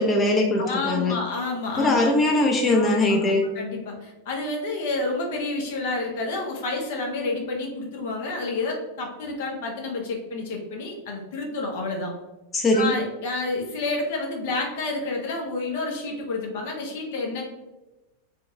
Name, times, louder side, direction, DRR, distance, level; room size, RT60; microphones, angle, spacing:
voice 1, 0.0-1.1 1.8-3.5 12.5-13.0, left 2 dB, 20° left, 1 dB, 0.6 m, -21 dB
voice 2, 0.6-2.1 2.7-2.9 3.2-12.1 12.7-17.4, left 3 dB, 65° left, 1 dB, 0.9 m, -29 dB
3.8 x 2.4 x 3.8 m, 1.0 s
hypercardioid pair, 95°, 0 cm